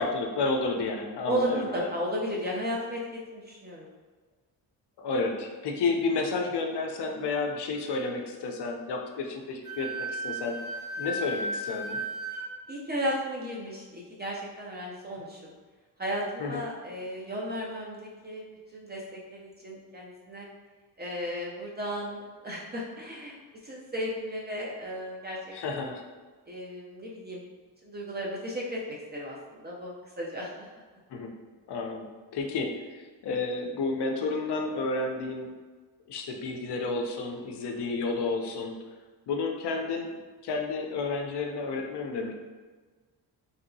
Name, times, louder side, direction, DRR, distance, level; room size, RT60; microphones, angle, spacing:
voice 1, 0.0-1.9 5.0-10.6 11.0-12.0 16.4-16.6 25.5-26.0 31.1-31.3 31.7-35.5 36.1-38.8 39.3-40.1 40.4-42.3, left 3 dB, 65° left, 3 dB, 0.5 m, -31 dB
voice 2, 1.3-3.0 3.3-3.9 12.7-15.5 16.0-18.4 18.7-20.5 21.0-23.4 23.6-25.8 26.5-27.4 27.8-28.8 29.1-30.7, equal, 25° right, -3 dB, 0.4 m, -34 dB
Wind instrument woodwind instrument, 9.6-12.4, right 1 dB, 10° right, 0.8 m, -34 dB
3.2 x 2.7 x 2.6 m, 1.4 s
wide cardioid pair, 150°, 44 cm